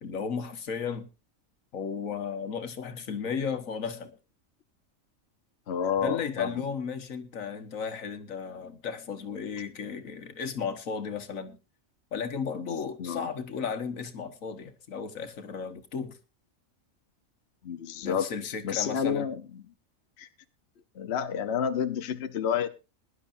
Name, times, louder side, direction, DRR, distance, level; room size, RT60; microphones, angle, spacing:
voice 1, 0.0-1.1 1.7-4.1 6.0-11.6 12.1-16.2 18.0-19.3, left 6 dB, 80° left, 1.7 m, -34 dB
voice 2, 5.7-6.5 13.0-13.3 17.6-19.4 20.2-20.3 21.0-22.7, left 7 dB, 55° left, 1.1 m, -30 dB
21.0 x 11.0 x 2.6 m
omnidirectional pair, 1.4 m